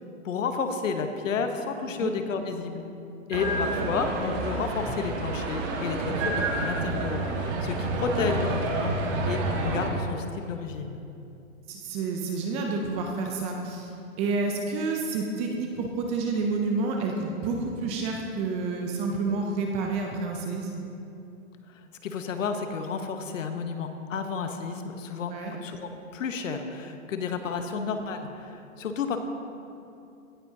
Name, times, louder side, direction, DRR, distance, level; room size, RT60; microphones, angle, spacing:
voice 1, 0.2-2.8 3.3-8.9 9.2-11.0 21.7-29.2, left 5 dB, 70° left, 6 dB, 1.1 m, -31 dB
sound 1, 3.3-9.9, right 2 dB, 35° right, 1.5 m, -29 dB
voice 2, 11.7-13.9 14.2-20.9 25.3-25.5, right 3 dB, 15° right, 1 dB, 0.4 m, -29 dB
17.0 x 8.5 x 2.8 m, 2.7 s
hypercardioid pair, 130°, 40 cm